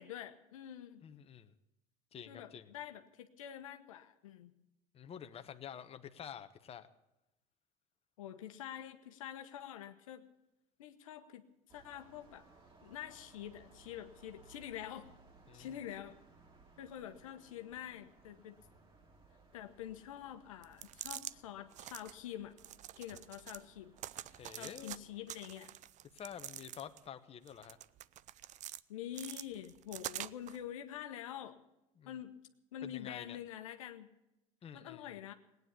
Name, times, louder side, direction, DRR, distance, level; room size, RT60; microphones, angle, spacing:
voice 1, 0.0-1.0 2.3-4.5 8.2-10.3 10.8-12.4 12.8-15.1 15.5-16.2 16.8-18.6 19.5-22.6 23.0-23.9 24.6-25.7 28.9-31.6 32.0-32.3 32.7-34.1 34.7-35.3, left 11 dB, 85° left, 7 dB, 1.1 m, -46 dB
voice 2, 1.0-1.5 2.1-2.7 4.9-6.9 15.5-15.8 24.3-25.0 26.1-27.8 32.0-32.2 32.8-33.4 34.6-35.2, left 9 dB, 35° left, 9 dB, 1.1 m, -49 dB
sound 1, 11.7-25.3, right 4 dB, 30° right, 3.2 m, -63 dB
sound 2, 20.6-21.3 21.7-22.1 22.6-23.6 24.0-25.0 25.3-27.1 27.5-28.8 29.1-30.6, right 13 dB, 45° right, 0.5 m, -46 dB
18.0 x 9.5 x 8.3 m, 0.92 s
hypercardioid pair, 85°, 17 cm